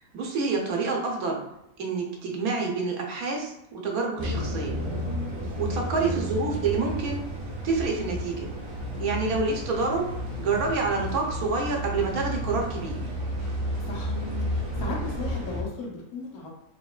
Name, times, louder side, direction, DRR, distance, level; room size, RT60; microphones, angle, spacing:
voice 1, 0.1-1.4 1.8-4.8 5.6-7.3 7.6-8.5 9.0-13.0, right 4 dB, 75° right, 0 dB, 1.4 m, -28 dB
sound 1, 4.2-15.6, equal, 25° right, 0.9 m, -32 dB
voice 2, 14.4-16.5, left 3 dB, 80° left, -3 dB, 1.5 m, -37 dB
5.1 x 3.0 x 2.4 m, 0.85 s
omnidirectional pair, 1.6 m